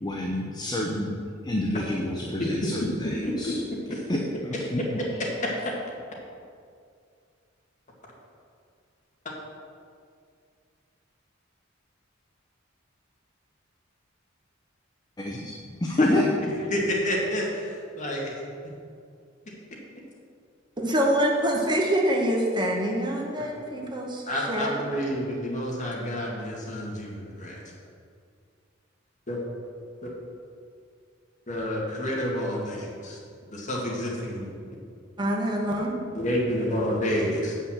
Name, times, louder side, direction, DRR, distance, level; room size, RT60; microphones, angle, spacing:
voice 1, 0.0-1.1 1.4-3.6 4.1-4.2 4.4-4.8 15.2-15.5 15.8-16.2, left 1 dB, 20° left, -1 dB, 0.7 m, -28 dB
voice 2, 3.0-3.5 3.9-4.0 4.8-4.9 9.3-9.4 16.0-16.1 16.7-18.3 24.3-27.6 29.3-29.4 30.0-30.1 31.5-33.2 33.5-34.5 36.1-37.5, equal, 40° left, -3 dB, 1.9 m, -29 dB
voice 3, 20.8-24.8 35.2-36.0, equal, 25° right, -1 dB, 1.0 m, -25 dB
8.2 x 5.6 x 7.2 m, 2.3 s
head